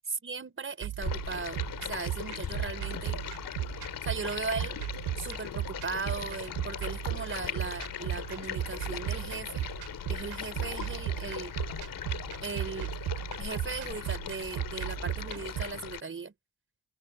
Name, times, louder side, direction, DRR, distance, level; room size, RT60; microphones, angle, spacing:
voice 1, 0.2-3.2 4.0-4.8 5.2-9.7 10.1-11.5 12.4-12.9 13.4-16.3, right 4 dB, 35° right, 5.4 m, -38 dB
sound 1, 0.8-15.6, right 13 dB, 85° right, 2.8 m, -36 dB
Stream, 1.0-16.0, left 9 dB, 65° left, 2.3 m, -39 dB
cardioid pair, 80°, 36 cm